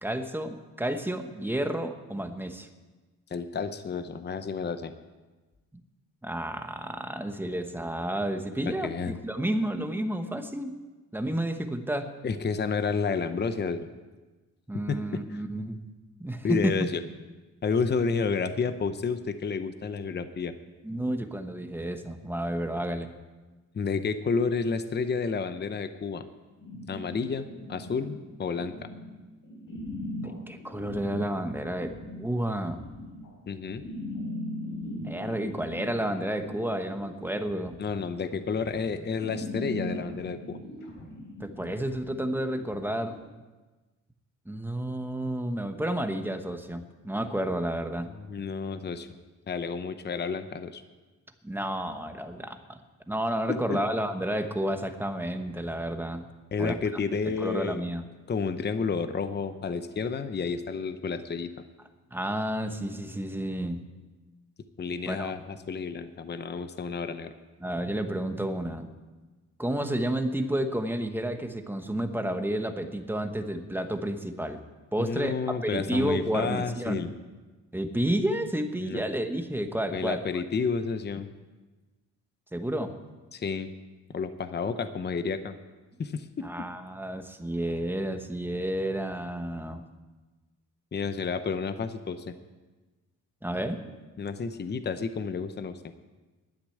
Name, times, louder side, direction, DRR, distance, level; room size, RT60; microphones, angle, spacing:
voice 1, 0.0-2.7 6.2-10.8 11.1-12.1 14.7-15.8 16.2-16.8 20.8-23.1 30.2-32.8 35.0-37.8 41.4-43.2 44.5-48.1 51.4-52.8 53.1-56.3 56.6-56.8 57.3-58.0 62.1-63.8 65.1-65.3 67.6-68.9 69.6-74.6 74.9-77.1 77.7-80.4 82.5-82.9 86.4-89.8 93.4-93.8, right 1 dB, 5° right, 7 dB, 1.1 m, -31 dB
voice 2, 3.3-4.9 8.7-9.2 12.2-13.9 14.9-15.2 16.4-17.0 17.6-20.5 23.7-26.2 26.9-28.8 33.5-33.8 37.8-40.6 48.2-49.1 49.5-50.8 53.5-53.8 56.5-57.8 58.3-61.5 64.8-67.3 75.0-77.1 78.8-79.0 79.9-81.3 83.3-83.7 84.1-85.5 86.0-86.7 90.9-92.4 94.2-95.9, left 5 dB, 30° left, 10 dB, 0.8 m, -30 dB
sound 1, 26.6-43.2, left 1 dB, 85° left, 3.9 m, -40 dB
12.0 x 9.8 x 8.5 m, 1.2 s
cardioid pair, 120°, 32 cm